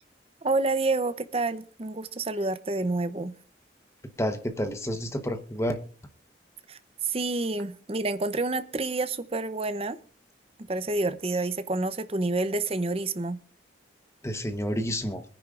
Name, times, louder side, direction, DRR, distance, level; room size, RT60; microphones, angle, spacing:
voice 1, 0.4-3.3 6.7-10.0 10.7-13.4, right 2 dB, 30° right, 0.7 m, -28 dB
voice 2, 4.2-5.8 14.2-15.2, equal, 15° left, 1.1 m, -29 dB
23.0 x 10.0 x 2.5 m
head